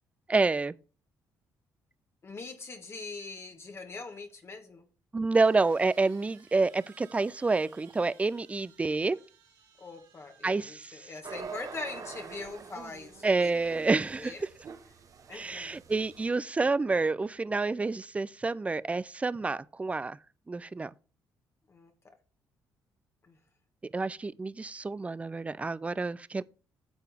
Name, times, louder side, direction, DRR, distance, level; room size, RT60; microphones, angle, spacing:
voice 1, 0.3-0.7 5.1-9.2 10.4-10.9 13.2-14.3 15.3-20.2 20.5-20.9 23.9-26.4, right 3 dB, 20° right, 0.4 m, -28 dB
voice 2, 2.2-4.8 9.8-13.5 14.2-14.5 15.3-15.8 21.7-22.2 23.2-23.4, left 3 dB, 35° left, 1.2 m, -42 dB
sound 1, 3.7-3.8 5.3-11.4, right 7 dB, 80° right, 2.4 m, -60 dB
sound 2, 11.2-16.3, right 6 dB, 50° right, 0.9 m, -45 dB
9.2 x 6.8 x 3.5 m
cardioid pair, 85°, 7 cm